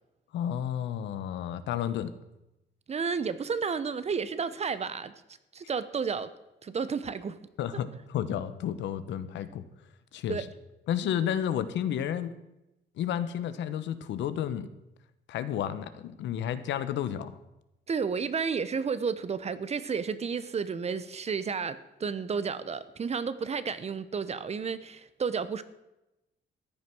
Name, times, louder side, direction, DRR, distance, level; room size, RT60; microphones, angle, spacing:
voice 1, 0.3-2.1 7.6-9.6 10.1-10.5 10.9-12.3 13.0-14.7 15.3-17.4, left 10 dB, 85° left, 12 dB, 1.1 m, -31 dB
voice 2, 2.9-5.1 5.5-6.3 6.6-7.4 10.3-10.4 17.9-25.6, right 5 dB, 35° right, 14 dB, 1.0 m, -31 dB
14.5 x 9.8 x 6.1 m, 0.93 s
cardioid pair, 110°, 18 cm